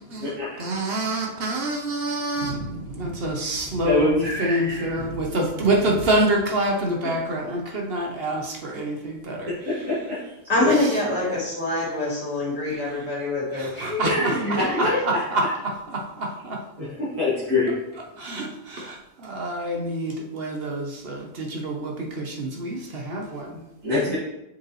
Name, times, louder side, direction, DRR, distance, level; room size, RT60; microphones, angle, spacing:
voice 1, 0.0-9.9 10.7-11.4 12.9-13.1 13.5-16.6 18.2-23.6 24.0-24.1, right 1 dB, 50° right, 1 dB, 1.2 m, -27 dB
voice 2, 3.8-4.9 9.7-10.2 10.6-10.7 14.0-15.2 16.8-17.7 23.8-24.2, left 2 dB, 80° right, -12 dB, 2.8 m, -25 dB
voice 3, 10.5-15.0, left 1 dB, 40° left, -5 dB, 2.5 m, -25 dB
6.9 x 5.3 x 3.1 m, 0.90 s
omnidirectional pair, 1.4 m